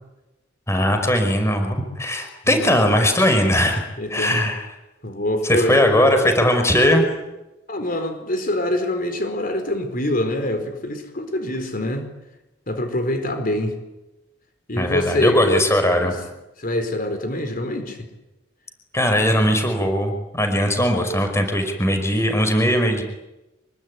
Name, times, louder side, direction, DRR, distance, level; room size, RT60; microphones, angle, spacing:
voice 1, 0.7-3.8 4.1-4.6 5.4-7.0 14.8-16.2 18.9-23.0, equal, 15° left, 6 dB, 5.1 m, -19 dB
voice 2, 4.0-4.5 5.0-5.9 7.7-12.1 12.7-13.8 14.7-16.1 16.6-18.1, left 1 dB, 50° left, 7 dB, 4.6 m, -25 dB
26.0 x 23.5 x 9.8 m, 0.99 s
head